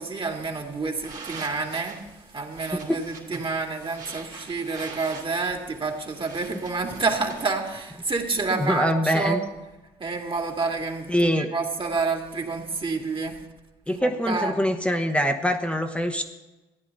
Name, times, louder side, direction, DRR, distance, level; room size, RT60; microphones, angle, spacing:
voice 1, 0.0-2.0 2.3-9.4 10.0-13.3 13.9-14.7, right 4 dB, 35° right, 2 dB, 2.4 m, -29 dB
sound 1, 1.0-7.5, right 4 dB, 60° right, 3.1 m, -43 dB
voice 2, 8.5-9.4 11.1-11.5 13.9-16.2, equal, 5° left, 5 dB, 1.1 m, -24 dB
14.5 x 10.0 x 4.1 m, 1.1 s
hypercardioid pair, 55°, 16 cm